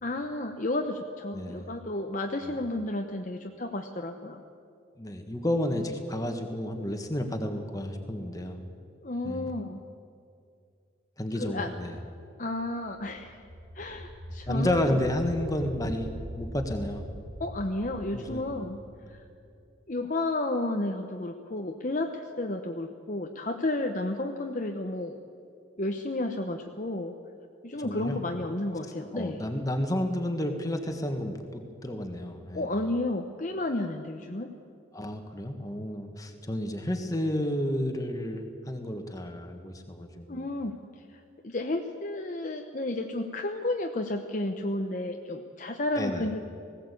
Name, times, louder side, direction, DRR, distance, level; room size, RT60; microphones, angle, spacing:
voice 1, 0.0-4.4 9.0-9.8 11.4-11.7 12.4-13.4 13.7-15.0 17.4-18.8 19.1-19.2 19.9-25.2 25.8-27.1 27.6-29.5 32.5-34.5 40.3-46.4, left 2 dB, 40° left, 4 dB, 0.9 m, -32 dB
voice 2, 1.3-1.7 5.0-8.6 9.2-9.4 11.2-12.0 14.5-16.1 16.4-17.0 18.1-18.4 27.8-28.2 29.1-32.7 34.9-40.5 45.9-46.3, left 1 dB, 15° left, 5 dB, 1.7 m, -31 dB
sound 1, 12.8-19.6, equal, 75° right, 1.8 m, -42 dB
19.5 x 16.5 x 8.4 m, 2.5 s
head